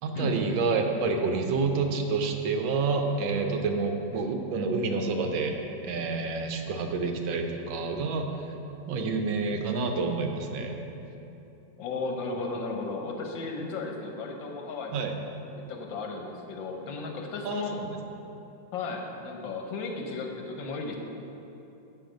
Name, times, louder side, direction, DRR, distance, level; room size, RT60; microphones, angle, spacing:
voice 1, 0.0-5.6 5.8-8.3 8.9-10.8 14.9-15.2 17.4-18.0, right 4 dB, 85° right, 4 dB, 1.5 m, -28 dB
voice 2, 11.8-15.1 15.5-17.8 18.7-21.0, left 3 dB, 80° left, 2 dB, 1.6 m, -35 dB
7.5 x 6.6 x 5.1 m, 2.9 s
omnidirectional pair, 2.1 m